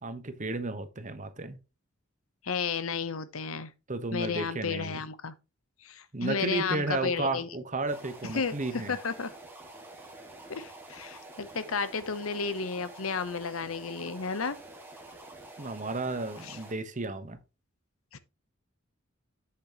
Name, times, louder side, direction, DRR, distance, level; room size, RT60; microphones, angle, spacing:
voice 1, 0.0-1.6 3.9-5.0 6.1-8.9 15.6-17.4, right 2 dB, 40° right, 1.1 m, -33 dB
voice 2, 2.4-3.7 4.1-5.3 5.8-7.5 8.2-9.3 10.5-14.6 16.4-16.6 18.1-18.2, left 5 dB, 90° left, 0.9 m, -33 dB
sound 1, 7.9-16.7, right 2 dB, 10° right, 1.9 m, -48 dB
7.7 x 7.1 x 3.0 m
head